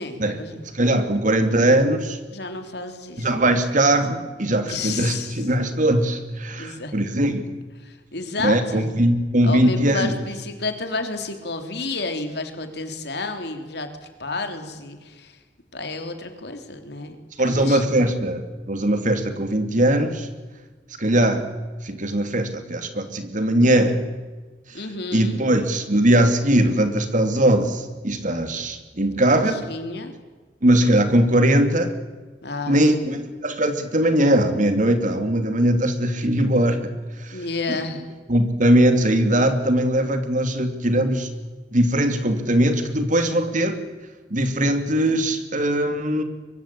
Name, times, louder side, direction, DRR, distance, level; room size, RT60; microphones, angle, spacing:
voice 1, 0.0-0.6 2.3-3.3 4.6-5.3 6.6-6.9 7.8-8.9 9.4-13.9 14.2-15.4 15.7-17.8 24.7-25.4 29.7-30.1 32.4-32.8 37.3-38.0, left 3 dB, 70° left, 6 dB, 3.4 m, -31 dB
voice 2, 0.7-2.2 3.2-7.6 8.4-10.2 17.4-18.4 18.7-20.3 21.0-21.4 21.8-24.0 25.1-29.6 30.6-31.9 32.7-37.4 37.7-37.8 38.3-41.3 41.7-43.8 44.3-46.2, right 1 dB, 45° right, 8 dB, 2.8 m, -20 dB
23.5 x 23.0 x 8.6 m, 1.3 s
head